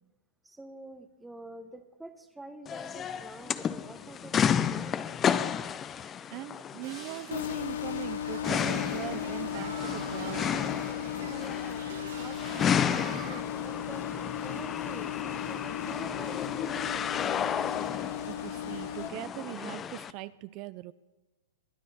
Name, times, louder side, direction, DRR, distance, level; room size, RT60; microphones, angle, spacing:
voice 1, 0.4-5.1 11.1-14.1 14.4-17.2, right 2 dB, 5° right, 8 dB, 0.8 m, -47 dB
sound 1, 2.7-20.1, left 8 dB, 20° left, 0.5 m, -32 dB
voice 2, 6.3-10.5 18.3-20.9, right 17 dB, 40° right, 16 dB, 0.4 m, -41 dB
sound 2, 6.8-13.4, right 9 dB, 65° right, 1.7 m, -46 dB
sound 3, 7.3-19.1, left 9 dB, 75° left, 0.9 m, -36 dB
22.0 x 13.0 x 4.1 m, 1.1 s
hypercardioid pair, 140°, 0 cm